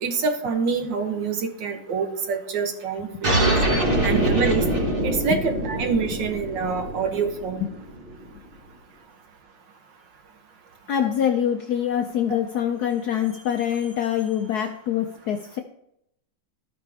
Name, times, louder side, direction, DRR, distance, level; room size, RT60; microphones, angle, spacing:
voice 1, 0.0-3.6 4.0-4.6 5.0-7.7, right 5 dB, 65° right, 6 dB, 1.6 m, -26 dB
sound 1, 3.2-8.3, right 1 dB, 30° right, 1.3 m, -24 dB
voice 2, 10.9-15.6, left 9 dB, 75° left, 5 dB, 0.9 m, -25 dB
13.0 x 5.1 x 3.4 m, 0.78 s
omnidirectional pair, 2.2 m